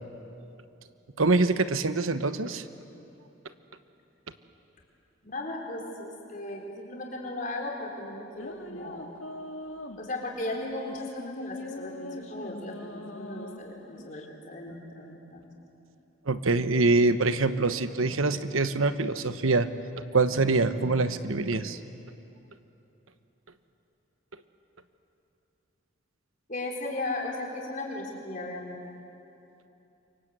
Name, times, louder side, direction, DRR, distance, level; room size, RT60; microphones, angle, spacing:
voice 1, 1.2-2.6 16.3-19.7 20.1-21.8, right 3 dB, 85° right, 10 dB, 1.1 m, -24 dB
voice 2, 5.2-9.1 9.9-15.4 26.5-28.8, left 2 dB, 40° left, -1 dB, 4.3 m, -36 dB
sound 1, 8.3-14.3, left 1 dB, 85° left, 1.7 m, -42 dB
28.0 x 24.0 x 8.2 m, 2.9 s
head